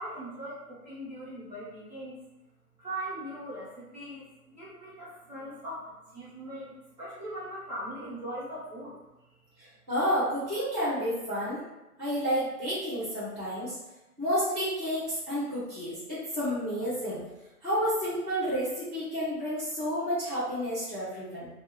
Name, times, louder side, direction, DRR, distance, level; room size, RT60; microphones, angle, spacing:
voice 1, 0.0-2.2 2.8-5.8 6.1-9.0, right 1 dB, 25° right, -9 dB, 1.1 m, -40 dB
voice 2, 9.6-11.6 12.0-13.8 14.2-17.2 17.6-21.5, equal, 10° right, -21 dB, 0.7 m, -30 dB
2.2 x 2.1 x 3.8 m, 0.98 s
hypercardioid pair, 160°, 46 cm